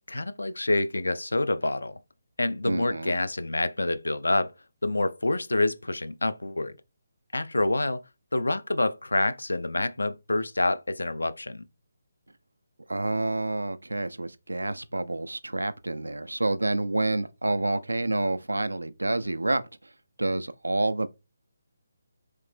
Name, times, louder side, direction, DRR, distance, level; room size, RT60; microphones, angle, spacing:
voice 1, 0.1-2.0 2.4-4.5 4.8-6.8 7.3-8.0 8.3-11.6, left 2 dB, 75° left, 0.3 m, -27 dB
voice 2, 2.6-3.1 12.9-19.6 20.2-21.1, right 2 dB, 80° right, 0.4 m, -28 dB
3.2 x 2.7 x 3.2 m
figure-of-eight pair, 145°, 0 cm